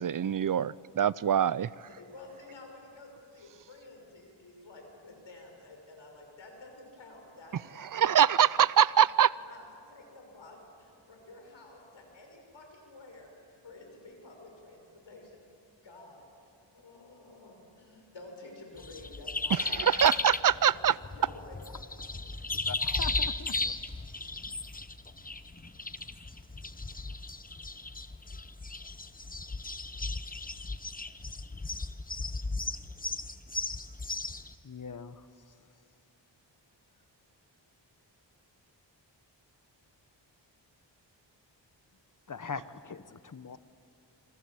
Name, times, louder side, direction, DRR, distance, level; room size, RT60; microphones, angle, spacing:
voice 1, 0.0-1.7 7.9-9.4 19.5-20.9, right 9 dB, 45° right, 0.5 m, -24 dB
voice 2, 1.6-8.6 9.3-15.4 15.8-20.6 21.1-21.7, left 2 dB, 80° left, 6.4 m, -51 dB
sound 1, 18.8-34.5, left 3 dB, 20° left, 0.9 m, -35 dB
sound 2, 20.8-27.0, right 1 dB, 20° right, 7.6 m, -58 dB
voice 3, 22.7-23.7 34.6-35.2 42.3-43.6, left 5 dB, 45° left, 1.0 m, -41 dB
27.5 x 26.0 x 7.2 m
wide cardioid pair, 65°, 45 cm